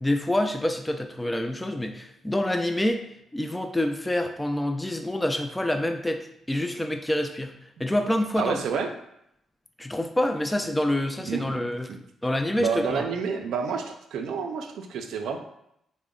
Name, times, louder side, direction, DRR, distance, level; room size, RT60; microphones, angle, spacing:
voice 1, 0.0-3.0 3.3-7.5 7.8-8.6 9.8-11.9 12.2-13.1, left 1 dB, 10° left, 5 dB, 0.3 m, -27 dB
voice 2, 8.4-8.9 11.2-11.6 11.9-12.0 12.6-15.4, right 6 dB, 80° right, 5 dB, 0.4 m, -29 dB
3.7 x 2.1 x 3.6 m, 0.77 s
cardioid pair, 75°, 0 cm